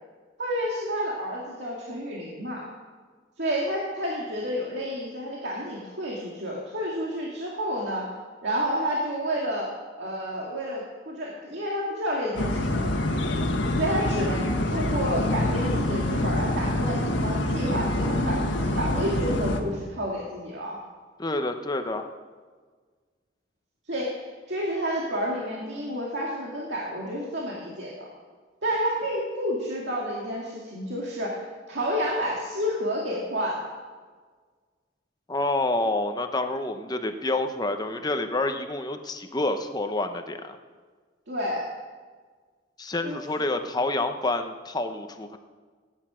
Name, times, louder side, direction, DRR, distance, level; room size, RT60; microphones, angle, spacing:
voice 1, 0.4-2.6 3.4-8.1 8.4-9.7 10.0-12.9 13.7-20.8 23.9-24.1 24.5-28.1 28.6-33.7 41.3-41.6 43.0-43.5, equal, 65° right, -3 dB, 2.3 m, -30 dB
sound 1, 12.3-19.6, left 1 dB, 85° left, 1.7 m, -26 dB
voice 2, 21.2-22.1 35.3-40.6 42.8-45.4, left 2 dB, 20° left, 7 dB, 0.9 m, -28 dB
17.5 x 9.9 x 6.2 m, 1.5 s
head